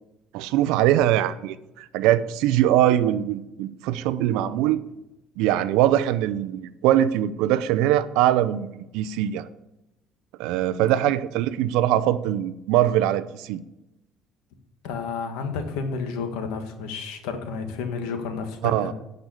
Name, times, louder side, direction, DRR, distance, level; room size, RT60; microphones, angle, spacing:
voice 1, 0.3-4.8 5.4-9.5 10.4-13.6 18.6-18.9, right 12 dB, 80° right, 15 dB, 0.6 m, -22 dB
voice 2, 14.8-18.9, left 5 dB, 85° left, 6 dB, 1.6 m, -31 dB
10.5 x 5.3 x 8.2 m, 0.93 s
supercardioid pair, 100°, 0 cm